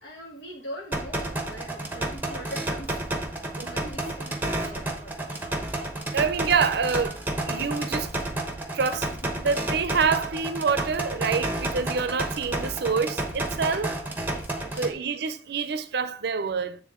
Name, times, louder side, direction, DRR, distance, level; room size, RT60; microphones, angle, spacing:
voice 1, 0.0-3.2 3.7-5.4 5.8-5.9 9.2-9.3 13.6-13.8 14.3-15.1, equal, 70° left, 1.3 m, -42 dB
sound 1, 0.9-14.9, right 1 dB, 10° right, 0.9 m, -31 dB
voice 2, 6.1-7.2 7.5-8.1 8.7-9.1 9.4-13.9 14.8-16.8, right 5 dB, 65° right, 0.5 m, -26 dB
8.3 x 3.6 x 3.6 m
head